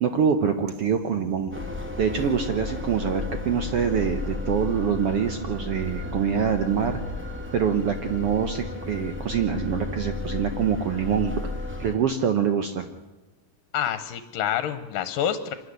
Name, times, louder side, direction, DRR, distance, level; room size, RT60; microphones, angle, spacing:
voice 1, 0.0-1.5 2.0-7.0 7.5-11.5 11.8-12.9, right 7 dB, 80° right, 7 dB, 1.3 m, -25 dB
sound 1, 0.7-7.2, right 3 dB, 60° right, 1.3 m, -42 dB
sound 2, 1.5-11.9, left 2 dB, 5° right, 1.3 m, -33 dB
voice 2, 13.7-15.5, left 10 dB, 75° left, 11 dB, 2.6 m, -27 dB
25.0 x 13.0 x 9.9 m, 1.2 s
omnidirectional pair, 4.1 m